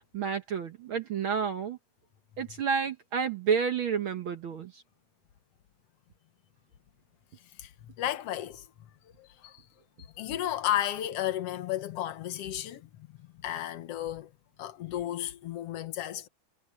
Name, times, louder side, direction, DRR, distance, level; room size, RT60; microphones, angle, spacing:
voice 1, 0.1-1.8 2.4-4.8, right 6 dB, 70° right, 1.2 m, -30 dB
voice 2, 7.6-8.6 9.2-9.6 10.2-14.3 14.6-16.3, left 12 dB, 65° left, 1.7 m, -33 dB
omnidirectional pair, 3.6 m